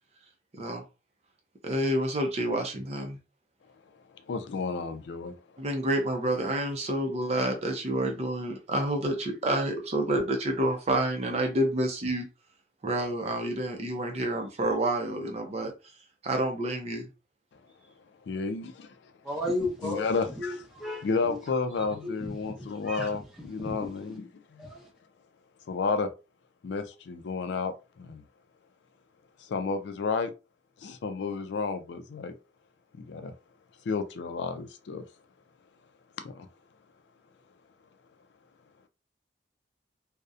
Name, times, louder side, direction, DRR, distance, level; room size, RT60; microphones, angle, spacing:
voice 1, 1.6-3.2 5.6-12.2 12.8-15.7 16.2-17.1, right 1 dB, 35° right, 0.5 m, -28 dB
voice 2, 4.3-5.3 18.3-19.0 19.8-20.6 21.0-24.7 25.7-26.1 26.6-28.2 29.4-30.3 30.8-32.3 33.0-33.3 33.9-35.0 36.2-36.5, left 4 dB, 70° left, 0.3 m, -32 dB
voice 3, 19.2-20.1 20.4-21.4 21.8-23.9 24.6-24.9, left 1 dB, 5° right, 0.8 m, -35 dB
2.7 x 2.0 x 2.4 m
head